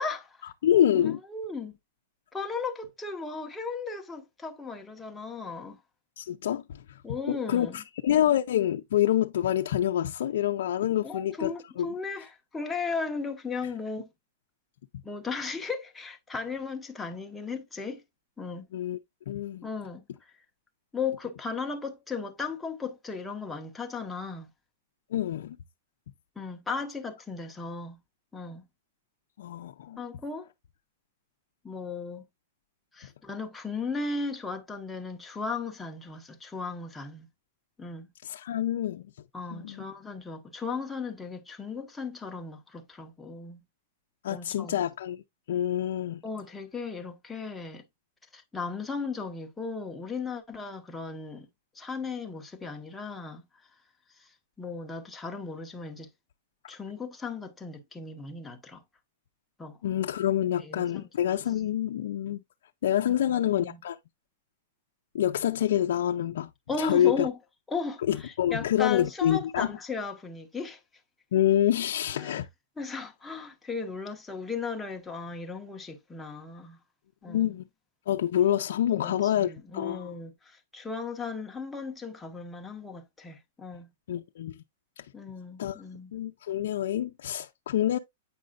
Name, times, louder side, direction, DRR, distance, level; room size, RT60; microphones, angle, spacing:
voice 1, 0.0-0.5 0.9-1.8 2.3-5.8 7.0-7.8 11.0-14.1 15.0-18.0 18.4-18.7 19.6-20.3 20.9-24.5 26.4-28.0 28.3-28.6 30.0-30.5 31.6-32.2 32.9-37.3 37.8-38.1 39.3-43.6 44.3-44.8 46.2-47.8 48.3-51.5 51.7-53.4 54.2-54.3 54.6-56.1 56.7-58.8 59.6-59.8 60.6-61.1 63.3-63.8 66.7-67.4 67.7-70.8 72.1-72.4 72.8-76.8 77.2-77.5 78.9-83.9 85.1-86.1, left 4 dB, 5° left, 0.8 m, -36 dB
voice 2, 0.6-1.2 6.2-7.0 7.3-11.9 18.7-19.0 19.3-19.6 25.1-25.6 29.4-30.0 38.2-39.0 39.5-39.8 44.2-45.2 45.5-46.2 59.8-62.4 62.8-64.0 65.1-66.5 66.8-67.3 68.1-69.7 71.3-72.5 77.3-77.6 78.1-80.2 84.1-84.6 85.0-85.1 85.6-85.8 86.1-88.0, left 11 dB, 65° left, 0.5 m, -27 dB
8.5 x 5.3 x 2.4 m
supercardioid pair, 165°, 0 cm